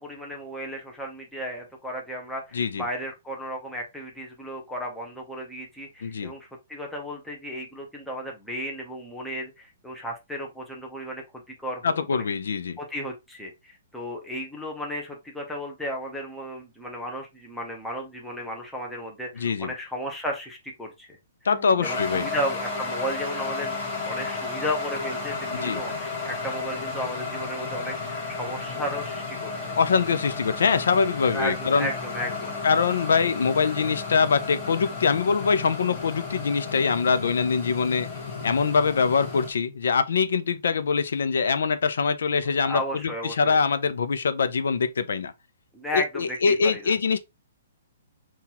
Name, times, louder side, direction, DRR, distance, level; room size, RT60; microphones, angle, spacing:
voice 1, 0.0-12.2 12.8-21.2 21.8-29.8 31.3-32.6 42.6-43.6 45.7-46.9, equal, ahead, 0.6 m, -34 dB
voice 2, 2.5-2.8 6.0-6.3 11.8-12.8 19.4-19.7 21.4-22.3 25.5-25.8 29.8-31.9 32.6-38.1 38.4-45.3 45.9-47.2, left 5 dB, 75° left, 0.5 m, -23 dB
sound 1, 21.5-37.0, left 4 dB, 35° left, 1.6 m, -43 dB
sound 2, 21.8-39.5, left 4 dB, 20° left, 1.1 m, -33 dB
5.7 x 2.3 x 2.8 m
hypercardioid pair, 175°, 0 cm